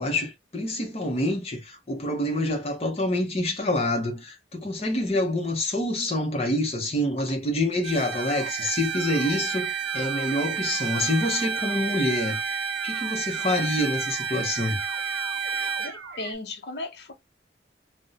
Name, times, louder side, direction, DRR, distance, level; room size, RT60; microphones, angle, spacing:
voice 1, 0.0-14.8, left 1 dB, 35° left, 0.8 m, -27 dB
Bowed string instrument, 7.8-15.9, right 6 dB, 30° right, 0.5 m, -30 dB
sound 1, 8.1-16.3, right 5 dB, 85° right, 0.6 m, -40 dB
voice 2, 15.8-17.1, left 2 dB, 65° left, 0.6 m, -36 dB
2.6 x 2.1 x 4.0 m
head